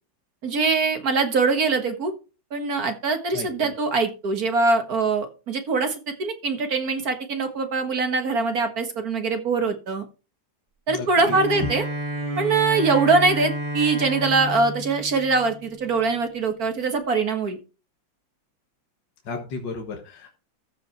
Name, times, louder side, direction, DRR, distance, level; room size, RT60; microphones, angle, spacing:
voice 1, 0.4-2.1 2.5-10.1 10.9-11.9 12.4-17.6, right 4 dB, 50° right, 6 dB, 2.0 m, -23 dB
voice 2, 3.3-3.7 10.9-11.4 19.3-20.3, left 4 dB, 65° left, 3 dB, 2.1 m, -34 dB
Bowed string instrument, 11.2-16.1, right 1 dB, 20° right, 1.8 m, -31 dB
14.5 x 5.0 x 4.6 m, 0.31 s
omnidirectional pair, 2.1 m